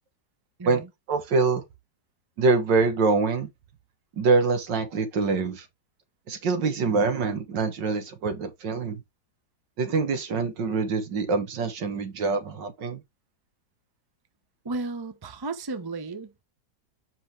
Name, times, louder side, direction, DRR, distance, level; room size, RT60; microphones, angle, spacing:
voice 1, 0.7-1.7 2.4-3.5 4.1-5.7 6.3-9.0 9.8-13.0, right 4 dB, 75° right, 2.1 m, -25 dB
voice 2, 14.6-16.3, right 3 dB, 25° right, 0.5 m, -34 dB
7.7 x 5.3 x 3.3 m
omnidirectional pair, 2.0 m